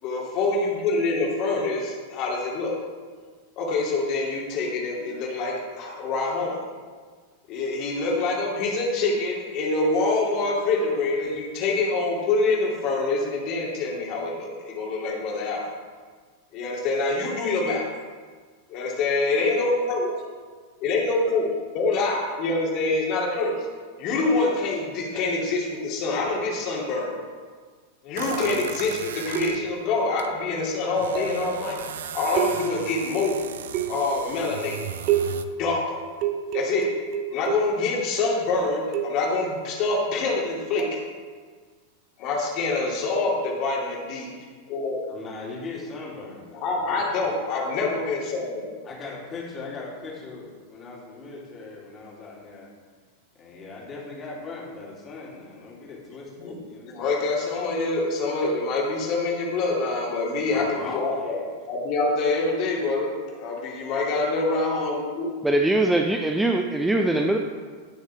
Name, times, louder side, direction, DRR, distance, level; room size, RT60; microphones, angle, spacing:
voice 1, 0.0-2.8 3.6-6.6 7.5-15.6 16.5-17.9 18.7-20.1 20.8-23.7 24.0-27.2 28.0-31.8 32.1-33.4 33.9-34.9 35.5-36.0 36.5-36.9 37.3-41.0 42.2-44.3 44.7-45.0 46.5-48.7 56.4-56.6 56.8-61.4 61.7-65.3, left 3 dB, 40° left, -3 dB, 2.7 m, -25 dB
sound 1, 28.2-30.3 30.5-35.5, right 8 dB, 60° right, 0.5 m, -37 dB
sound 2, 29.3-29.9 31.1-31.5 32.4-33.0 33.7-34.2 35.1-35.6 36.2-37.9 38.9-39.4 40.8-41.0, right 10 dB, 40° right, 0.9 m, -28 dB
voice 2, 45.1-47.3 48.8-52.7 53.4-56.9 60.4-61.4, left 3 dB, 25° left, -4 dB, 3.1 m, -39 dB
voice 3, 65.4-67.4, right 1 dB, 5° right, 3 dB, 0.6 m, -22 dB
16.5 x 6.4 x 3.5 m, 1.5 s
figure-of-eight pair, 90°, 0 cm